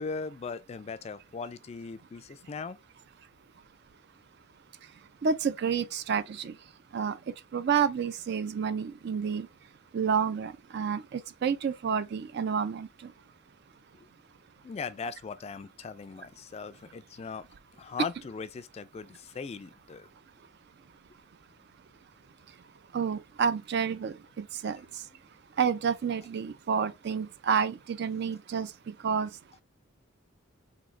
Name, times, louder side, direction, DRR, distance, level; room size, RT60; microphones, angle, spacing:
voice 1, 0.0-2.8 14.6-17.5 17.8-20.1, left 5 dB, 30° left, 0.3 m, -39 dB
voice 2, 5.2-6.6 6.9-7.2 7.5-9.5 9.9-13.1 22.9-24.8 25.6-29.3, right 6 dB, 55° right, 0.4 m, -29 dB
3.8 x 2.8 x 3.1 m
head